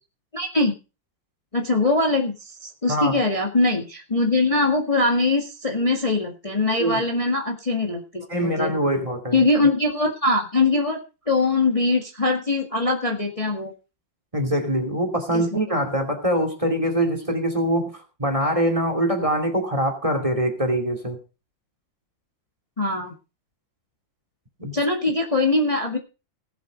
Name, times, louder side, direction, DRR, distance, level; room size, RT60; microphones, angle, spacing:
voice 1, 0.3-0.7 1.5-8.8 9.3-11.0 11.3-13.7 15.3-15.4 22.8-23.1 24.7-26.0, left 2 dB, 20° left, 2 dB, 1.8 m, -22 dB
voice 2, 8.3-9.4 14.3-21.2 24.6-24.8, right 1 dB, 15° right, 7 dB, 2.6 m, -23 dB
18.0 x 7.9 x 5.1 m, 0.32 s
omnidirectional pair, 2.1 m